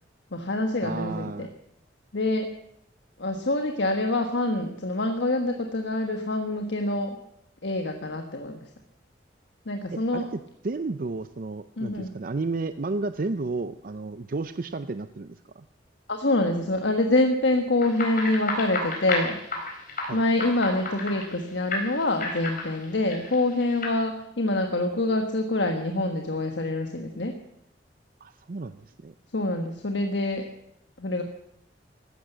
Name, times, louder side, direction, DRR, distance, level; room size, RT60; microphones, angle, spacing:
voice 1, 0.3-1.5 2.1-2.5 3.2-7.2 7.6-8.6 9.6-10.3 11.8-12.1 16.1-19.4 20.1-27.4 29.3-30.5 31.0-31.2, left 2 dB, 75° left, 4 dB, 1.4 m, -26 dB
voice 2, 0.8-1.5 9.9-15.7 20.1-20.2 28.2-29.1, right 3 dB, 50° right, 11 dB, 0.5 m, -32 dB
sound 1, 17.8-21.4 21.7-23.9, left 3 dB, 50° left, 4.2 m, -32 dB
15.0 x 12.0 x 8.0 m, 0.78 s
head